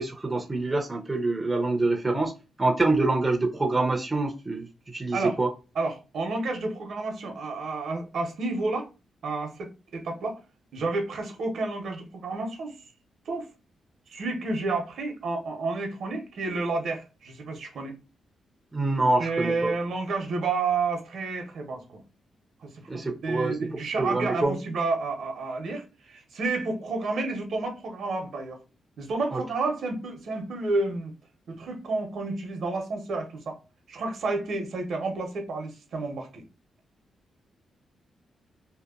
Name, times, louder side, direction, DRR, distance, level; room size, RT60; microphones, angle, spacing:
voice 1, 0.0-2.3 2.6-5.5 18.7-19.7 22.9-23.5 24.0-24.6 29.3-29.4, right 2 dB, 15° right, 0.5 m, -26 dB
voice 2, 5.8-8.9 9.2-10.4 10.7-12.8 13.3-13.5 14.1-17.9 19.2-22.0 22.6-28.6 29.0-31.1 31.5-33.6 33.9-36.4, right 3 dB, 65° right, 0.8 m, -30 dB
2.7 x 2.1 x 2.3 m
cardioid pair, 120°, 0 cm